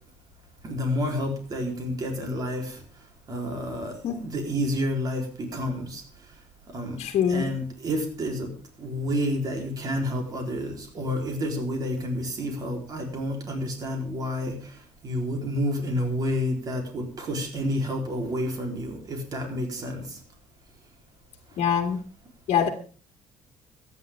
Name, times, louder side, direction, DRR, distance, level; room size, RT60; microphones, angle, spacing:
voice 1, 0.6-2.8 3.3-3.9 4.2-6.0 6.7-7.0 7.3-8.5 8.8-14.7 15.0-20.2, equal, 30° right, 2 dB, 3.9 m, -29 dB
voice 2, 7.0-7.5 21.6-22.0 22.5-22.7, left 8 dB, 50° left, 3 dB, 2.0 m, -24 dB
24.0 x 10.0 x 3.6 m, 0.38 s
cardioid pair, 175°, 13 cm